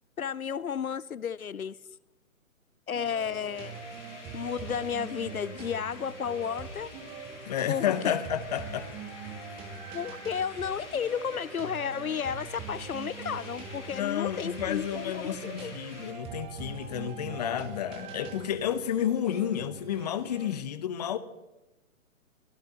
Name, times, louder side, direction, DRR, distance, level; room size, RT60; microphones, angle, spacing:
voice 1, 0.2-1.8 2.9-3.8 4.3-6.9 7.7-8.1 9.9-15.7, left 7 dB, 80° left, 0.6 m, -33 dB
sound 1, 2.9-20.6, right 5 dB, 15° right, 1.2 m, -43 dB
sound 2, 3.5-16.1, left 3 dB, 55° left, 4.1 m, -48 dB
voice 2, 7.5-8.9 13.9-21.2, left 10 dB, 30° left, 0.9 m, -31 dB
24.0 x 13.0 x 4.0 m
figure-of-eight pair, 130°, 42 cm